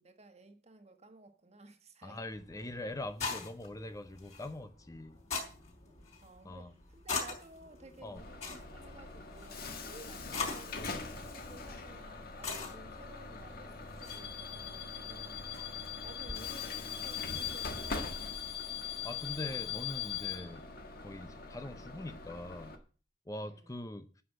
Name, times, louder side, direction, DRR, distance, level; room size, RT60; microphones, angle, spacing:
voice 1, 0.0-2.2 2.6-2.7 5.9-8.5 8.7-15.6 16.0-18.5 23.4-23.8, right 3 dB, 40° right, 1.4 m, -55 dB
voice 2, 2.0-5.2 6.4-6.7 8.0-8.2 19.0-20.7 21.0-22.8 23.3-24.1, left 1 dB, 20° left, 0.6 m, -42 dB
sound 1, 2.3-16.5, left 4 dB, 40° left, 4.4 m, -44 dB
Bus / Alarm, 8.2-22.8, left 6 dB, 60° left, 1.6 m, -41 dB
9.8 x 6.2 x 7.5 m
head